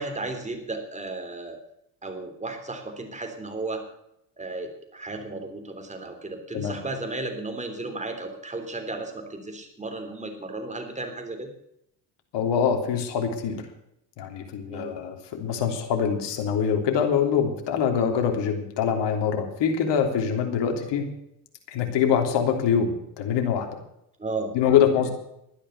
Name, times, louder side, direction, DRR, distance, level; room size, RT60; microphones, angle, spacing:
voice 1, 0.0-1.6 2.0-3.8 4.4-11.5 14.7-15.0 24.2-24.6, right 2 dB, 15° right, 5 dB, 3.5 m, -34 dB
voice 2, 12.3-13.6 14.2-21.0 21.7-23.7 24.5-25.1, left 7 dB, 60° left, 3 dB, 3.3 m, -24 dB
12.5 x 10.0 x 8.1 m, 0.77 s
supercardioid pair, 80°, 48 cm